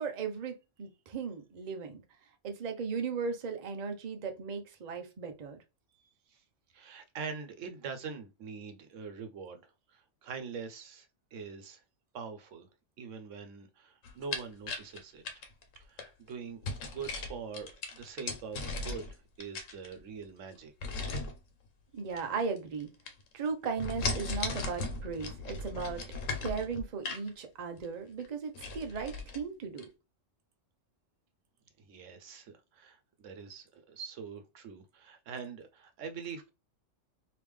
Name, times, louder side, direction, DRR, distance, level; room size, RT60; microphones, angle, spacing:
voice 1, 0.0-2.0 2.4-5.6 21.9-22.9 23.3-26.0 26.4-29.8, right 5 dB, 40° right, 0.7 m, -36 dB
voice 2, 6.7-11.8 12.1-12.7 13.0-15.2 15.7-20.7 31.8-36.5, right 5 dB, 80° right, 1.1 m, -44 dB
sound 1, 14.0-16.1 16.6-19.1 19.4-20.2 20.8-21.4 22.1-22.8 23.1-23.5 23.8-27.3 27.8-27.9 28.2-28.3 28.5-29.4 29.8-29.9, left 3 dB, 85° left, 1.1 m, -37 dB
3.5 x 2.9 x 3.1 m
omnidirectional pair, 1.3 m